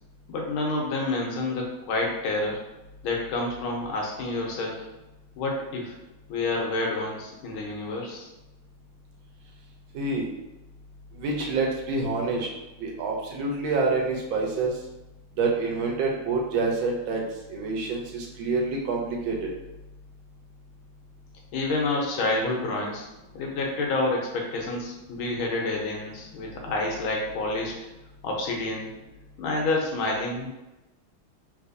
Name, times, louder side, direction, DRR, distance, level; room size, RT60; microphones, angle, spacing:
voice 1, 0.3-2.6 3.0-4.9 5.4-6.0 6.3-8.3 21.5-23.1 23.3-27.7 28.2-28.9 29.4-30.5, left 2 dB, 75° left, -1 dB, 1.5 m, -28 dB
voice 2, 9.9-10.3 11.2-12.5 12.8-14.7 15.4-17.2 17.5-19.5, right 3 dB, 75° right, -1 dB, 1.3 m, -27 dB
3.3 x 3.1 x 2.5 m, 1.0 s
omnidirectional pair, 2.3 m